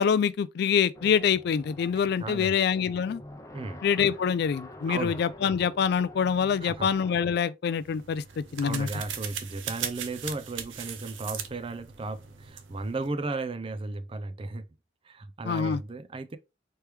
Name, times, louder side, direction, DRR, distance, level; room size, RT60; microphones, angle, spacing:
voice 1, 0.0-3.2 3.8-8.9 15.5-15.8, left 7 dB, 55° left, 0.3 m, -25 dB
sound 1, 0.9-7.4, left 1 dB, 15° left, 0.6 m, -46 dB
voice 2, 2.2-2.6 3.5-3.8 4.9-5.2 6.6-6.9 8.6-14.7 15.0-16.4, right 3 dB, 30° right, 0.4 m, -35 dB
sound 2, 7.8-13.1, right 8 dB, 75° right, 0.6 m, -39 dB
4.5 x 3.1 x 3.3 m
head